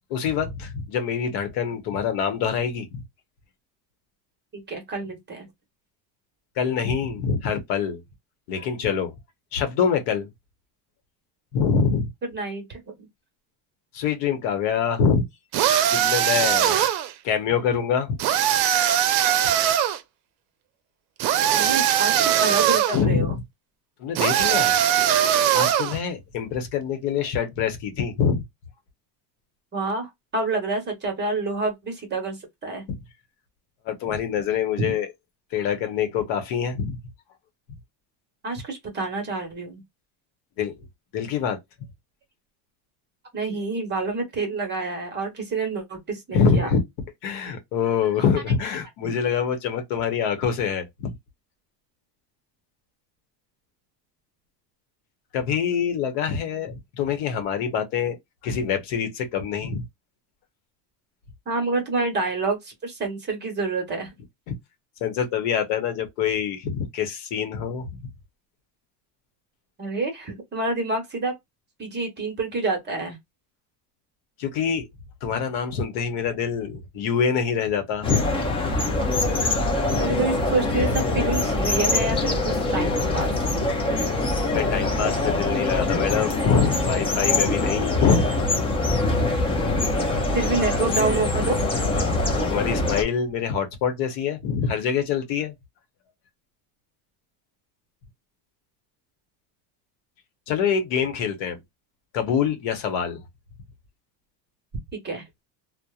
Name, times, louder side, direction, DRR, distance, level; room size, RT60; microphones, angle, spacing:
voice 1, 0.1-3.0 6.6-8.0 8.5-9.1 9.5-10.3 11.5-12.1 13.9-15.2 15.9-16.8 17.2-18.2 22.9-23.3 24.0-24.8 25.5-28.4 32.9-33.0 33.8-35.1 35.5-37.0 40.6-40.7 41.1-41.6 46.3-46.8 47.2-51.1 55.3-58.2 58.4-59.8 64.5-64.6 65.0-67.9 74.4-74.8 75.2-78.3 79.9-80.0 84.5-88.3 92.5-95.5 100.5-101.6 102.1-103.2, left 7 dB, 65° left, 0.9 m, -25 dB
voice 2, 4.5-5.5 12.2-13.1 21.5-23.4 29.7-32.4 32.6-32.8 38.4-39.8 43.3-46.7 49.0-49.1 61.5-64.1 69.8-71.3 71.8-73.2 80.0-83.3 90.3-91.6 105.0-105.2, right 3 dB, 25° right, 0.9 m, -28 dB
sound 1, 15.5-17.1 18.2-20.0 21.2-23.0 24.1-26.0, right 10 dB, 60° right, 0.6 m, -20 dB
sound 2, 78.0-93.0, left 2 dB, 15° left, 0.3 m, -24 dB
2.8 x 2.1 x 2.2 m
cardioid pair, 145°, 44 cm